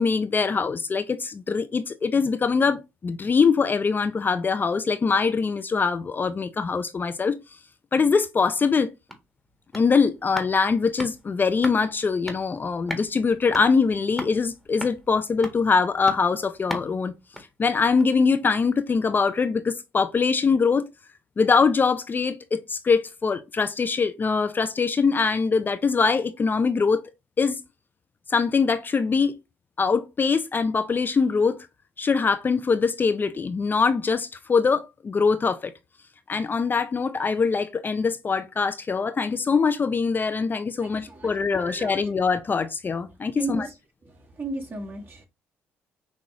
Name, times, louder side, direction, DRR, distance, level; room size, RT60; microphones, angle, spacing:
voice 1, 0.0-7.4 7.9-8.9 9.7-17.1 17.6-20.9 21.4-27.0 27.4-27.6 28.3-29.4 29.8-31.7 32.0-35.7 36.3-43.7, left 5 dB, 35° left, 0.5 m, -23 dB
sound 1, 8.9-18.3 18.6-18.7, equal, ahead, 1.4 m, -40 dB
voice 2, 40.8-42.1 43.3-43.7 44.0-45.3, right 1 dB, 35° right, 1.9 m, -35 dB
6.1 x 2.4 x 2.9 m
hypercardioid pair, 60°, 6 cm